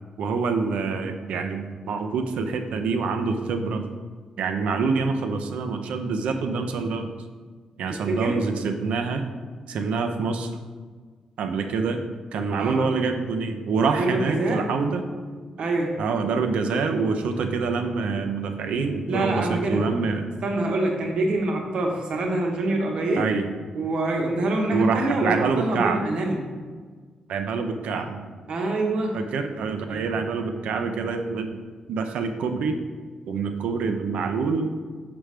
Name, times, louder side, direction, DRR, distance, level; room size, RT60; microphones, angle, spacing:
voice 1, 0.2-3.9 4.4-7.1 7.8-9.3 9.7-10.5 11.4-12.0 12.3-15.0 16.0-20.3 23.2-23.5 24.7-26.0 27.3-28.3 29.1-31.6 31.9-32.8 33.3-34.7, right 4 dB, 90° right, 6 dB, 0.5 m, -26 dB
voice 2, 7.9-8.4 12.6-12.8 13.9-14.7 15.6-16.0 19.1-19.9 20.4-23.3 23.7-26.5 28.5-29.2 29.9-30.1, right 2 dB, 55° right, 1 dB, 0.9 m, -25 dB
6.0 x 5.1 x 3.3 m, 1.5 s
wide cardioid pair, 160°, 2 cm